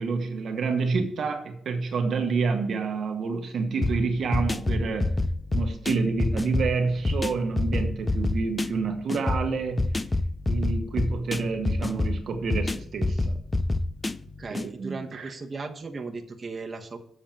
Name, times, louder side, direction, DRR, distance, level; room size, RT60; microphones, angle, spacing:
voice 1, 0.0-5.1 5.5-9.9 10.5-13.4 14.5-15.3, right 4 dB, 60° right, 1.1 m, -28 dB
sound 1, 3.8-14.7, left 2 dB, 20° left, 0.4 m, -28 dB
voice 2, 14.4-17.0, right 4 dB, 30° right, 1.1 m, -36 dB
7.4 x 6.3 x 7.4 m
cardioid pair, 105°, 0 cm